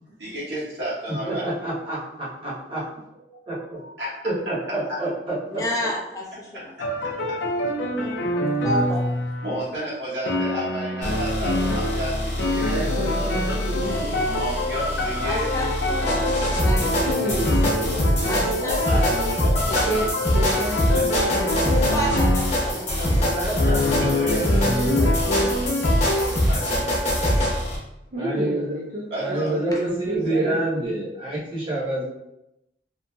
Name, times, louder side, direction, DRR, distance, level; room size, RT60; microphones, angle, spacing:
voice 1, 0.2-1.4 4.0-4.1 6.8-7.1 9.4-13.6 14.2-15.5 18.6-20.1 20.9-21.8 22.6-24.6 26.2-26.7 29.1-29.5, equal, 90° right, -8 dB, 1.4 m, -32 dB
voice 2, 1.2-2.9 3.1-3.9 4.2-5.6 28.2-28.7 29.2-32.0, right 2 dB, 30° right, -8 dB, 1.0 m, -27 dB
voice 3, 5.5-6.7 7.9-8.2 8.6-9.1 15.2-17.3 17.8-19.2 21.1-24.1 26.1-26.9 29.7-29.8, equal, 20° left, -3 dB, 0.5 m, -31 dB
sound 1, 6.8-9.6 10.3-22.7 23.6-26.3, left 1 dB, 90° left, 0.5 m, -26 dB
sound 2, 11.0-27.8, equal, 40° left, 0.9 m, -24 dB
voice 4, 12.7-14.2 16.9-18.3 19.9-20.1 20.3-21.5 24.2-24.5 24.8-25.8 28.1-30.6, right 1 dB, 55° right, -5 dB, 0.5 m, -31 dB
3.0 x 2.5 x 2.2 m, 0.88 s
head